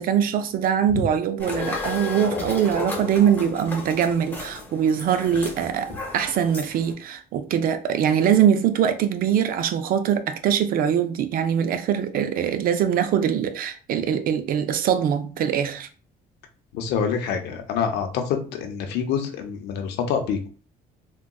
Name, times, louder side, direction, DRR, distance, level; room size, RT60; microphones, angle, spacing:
voice 1, 0.0-15.9, right 8 dB, 60° right, 0.4 m, -22 dB
sound 1, 1.4-6.9, left 2 dB, 10° left, 1.2 m, -33 dB
voice 2, 16.7-20.5, left 7 dB, 80° left, 0.6 m, -26 dB
3.7 x 2.2 x 2.3 m
cardioid pair, 110°, 17 cm